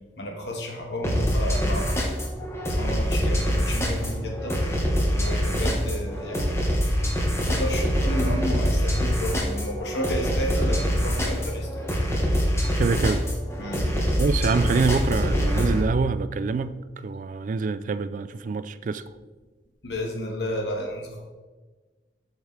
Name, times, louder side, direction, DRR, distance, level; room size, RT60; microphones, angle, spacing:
voice 1, 0.2-2.3 2.7-4.6 5.2-6.9 7.4-11.8 13.6-13.9 19.8-21.2, equal, 70° left, 1.5 m, -32 dB
sound 1, 1.0-15.8, equal, 15° left, 1.3 m, -25 dB
voice 2, 12.8-13.3 13.8-19.0, right 4 dB, 45° right, 0.3 m, -26 dB
7.6 x 6.5 x 3.4 m
head